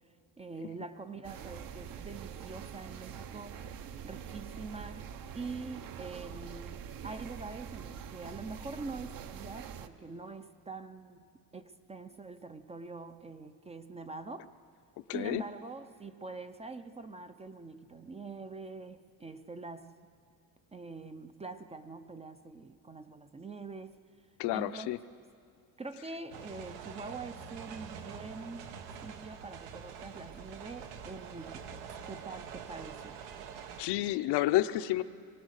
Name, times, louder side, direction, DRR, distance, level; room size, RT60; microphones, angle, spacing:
voice 1, 0.4-3.7 4.0-11.3 11.5-14.5 15.1-20.0 20.7-24.0 24.5-24.9 25.8-28.7 29.0-33.2, right 3 dB, 15° right, 9 dB, 0.5 m, -44 dB
sound 1, 1.2-9.9, right 8 dB, 50° right, 0.9 m, -45 dB
voice 2, 15.1-15.4 24.4-25.0 33.8-35.0, left 15 dB, 70° left, 11 dB, 0.8 m, -30 dB
sound 2, 26.3-33.8, right 7 dB, 85° right, 1.4 m, -45 dB
23.0 x 17.5 x 6.5 m, 2.3 s
cardioid pair, 125°, 43 cm